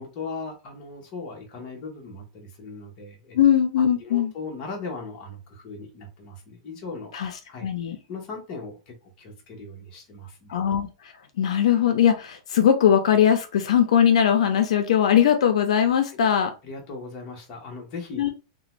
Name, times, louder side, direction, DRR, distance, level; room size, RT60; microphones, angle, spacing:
voice 1, 0.0-3.4 3.8-7.1 7.5-7.7 8.1-10.6 16.1-16.2 16.6-18.2, left 3 dB, 30° left, 0 dB, 0.8 m, -38 dB
voice 2, 3.3-4.3 7.1-7.3 7.6-8.0 10.5-10.9 11.4-16.5 18.2-18.3, left 9 dB, 80° left, 6 dB, 0.5 m, -20 dB
2.5 x 2.1 x 3.0 m, 0.31 s
supercardioid pair, 170°, 3 cm